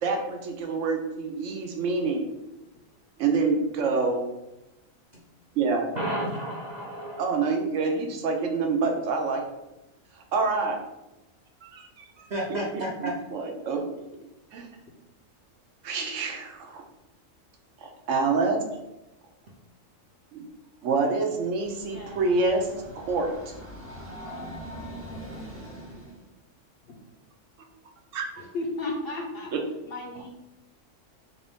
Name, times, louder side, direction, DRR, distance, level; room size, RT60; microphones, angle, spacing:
voice 1, 0.0-2.2 3.2-4.2 5.6-5.9 7.2-9.4 10.3-10.8 11.6-12.3 13.3-14.0 14.5-14.7 15.8-16.8 17.8-18.6 20.3-20.4 20.8-22.7 22.9-23.3 28.1-28.3 29.5-29.6, right 4 dB, 70° right, 3 dB, 0.9 m, -26 dB
voice 2, 5.9-7.4 7.7-8.0 8.7-9.1 12.3-13.2, right 1 dB, 50° right, -3 dB, 0.5 m, -33 dB
Train, 21.3-26.2, equal, 15° right, 0.7 m, -42 dB
voice 3, 21.9-22.3 26.9-27.0 28.4-29.5 29.8-30.3, left 2 dB, 65° left, 1 dB, 0.6 m, -34 dB
3.5 x 2.6 x 3.4 m, 0.95 s
omnidirectional pair, 1.4 m